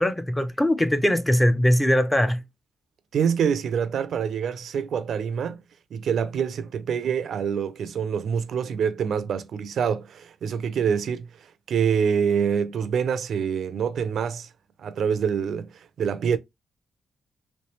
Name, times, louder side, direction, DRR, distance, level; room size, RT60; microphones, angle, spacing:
voice 1, 0.0-2.4, equal, 10° left, 0.3 m, -21 dB
voice 2, 3.1-5.6 5.9-11.3 11.7-14.5 14.8-16.4, right 7 dB, 65° right, 0.3 m, -26 dB
3.1 x 3.0 x 2.9 m
wide cardioid pair, 165°, 0 cm